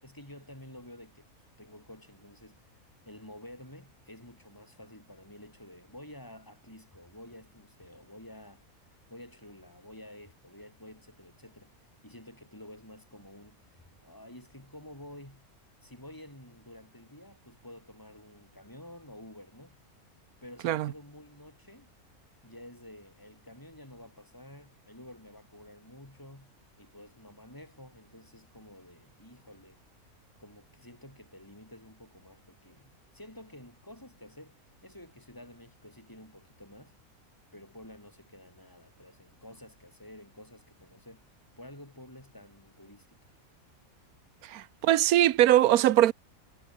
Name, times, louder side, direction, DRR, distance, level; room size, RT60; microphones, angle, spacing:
voice 1, 0.0-1.3 1.6-2.8 3.0-8.7 9.1-11.7 12.0-15.5 15.8-19.8 20.4-21.9 22.4-29.8 30.4-37.0 37.5-41.3 41.6-43.3, left 1 dB, 15° left, 6.7 m, -50 dB
voice 2, 44.4-46.1, right 13 dB, 85° right, 1.2 m, -22 dB
omnidirectional pair, 1.5 m